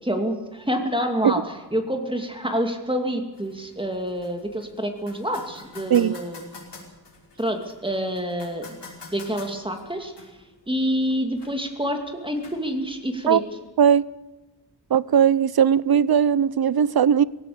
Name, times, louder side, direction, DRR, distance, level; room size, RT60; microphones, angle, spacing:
voice 1, 0.0-6.6 7.4-8.8 9.1-10.1 10.7-13.4, equal, 10° right, 2.6 m, -27 dB
sound 1, 3.3-13.3, left 3 dB, 80° left, 5.6 m, -47 dB
voice 2, 14.9-17.2, right 8 dB, 60° right, 0.7 m, -18 dB
19.5 x 17.0 x 8.7 m
wide cardioid pair, 95°, 41 cm